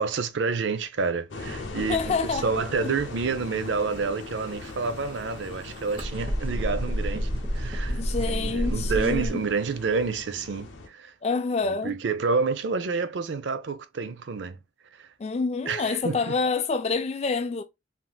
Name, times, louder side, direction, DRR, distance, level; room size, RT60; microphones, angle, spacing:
voice 1, 0.0-11.1 11.8-14.6 15.0-15.1 15.7-16.3, right 4 dB, 70° right, 0.5 m, -29 dB
sound 1, 1.3-10.9, left 3 dB, 75° left, 0.6 m, -40 dB
voice 2, 1.9-2.5 2.8-2.9 7.9-9.4 11.2-12.0 15.2-17.6, left 4 dB, 35° left, 0.3 m, -27 dB
sound 2, 4.1-9.3, equal, 30° right, 0.8 m, -30 dB
3.4 x 2.7 x 2.3 m
head